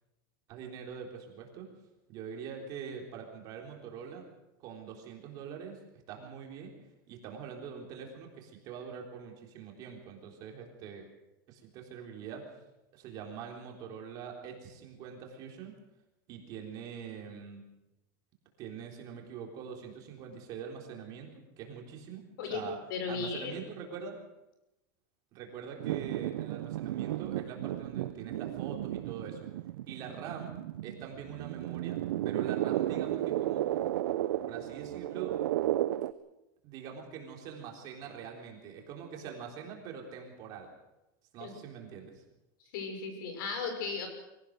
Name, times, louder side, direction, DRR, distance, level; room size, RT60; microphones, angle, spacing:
voice 1, 0.5-1.7 2.1-4.3 4.6-6.7 7.1-11.1 11.5-12.5 12.9-15.7 16.3-17.6 18.6-22.8 23.1-24.2 25.3-29.5 29.9-30.6 30.8-33.6 34.5-35.3 36.6-40.7 41.3-42.2, right 7 dB, 35° right, 1 dB, 3.7 m, -44 dB
voice 2, 22.9-23.6 41.4-41.5 42.7-44.1, left 5 dB, 65° left, 5 dB, 6.1 m, -35 dB
sound 1, 25.8-36.1, right 13 dB, 90° right, 0.8 m, -34 dB
24.0 x 17.0 x 6.6 m, 0.95 s
supercardioid pair, 170°, 12 cm